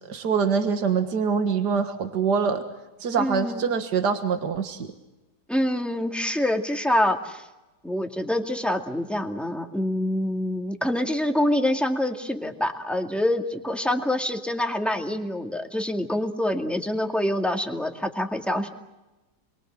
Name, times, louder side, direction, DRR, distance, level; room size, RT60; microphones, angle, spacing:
voice 1, 0.1-2.6 3.0-4.9, right 6 dB, 75° right, 7 dB, 2.2 m, -24 dB
voice 2, 3.2-3.7 5.5-7.4 7.8-18.7, left 1 dB, ahead, 3 dB, 2.2 m, -26 dB
30.0 x 22.5 x 7.7 m, 1.0 s
omnidirectional pair, 1.8 m